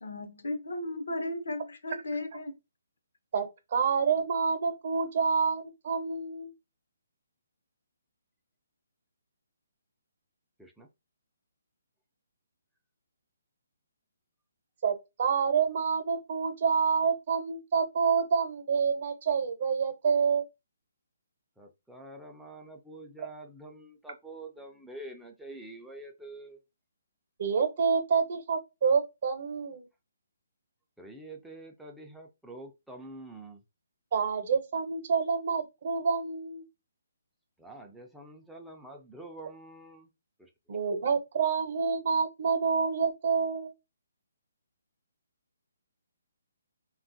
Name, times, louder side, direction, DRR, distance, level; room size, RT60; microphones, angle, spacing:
voice 1, 0.0-2.5, left 1 dB, 75° left, 0.8 m, -35 dB
voice 2, 3.3-6.5 14.8-20.4 27.4-29.9 34.1-36.6 40.7-43.7, right 6 dB, 50° right, 0.7 m, -28 dB
voice 3, 21.6-26.6 31.0-33.6 37.6-40.1 40.4-40.5, right 2 dB, ahead, 0.4 m, -46 dB
2.8 x 2.3 x 2.6 m
hypercardioid pair, 160°, 0 cm